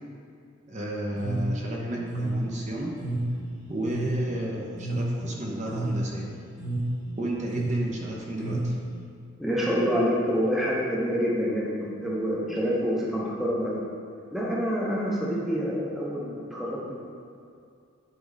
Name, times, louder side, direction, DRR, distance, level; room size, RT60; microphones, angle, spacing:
voice 1, 0.7-2.9 3.7-6.2 7.2-8.7, right 1 dB, 35° right, -2 dB, 0.9 m, -32 dB
sound 1, 1.1-9.0, right 1 dB, 70° right, 1.2 m, -30 dB
voice 2, 9.4-13.8 14.3-17.0, equal, ahead, -5 dB, 0.9 m, -27 dB
10.5 x 3.9 x 4.0 m, 2.4 s
head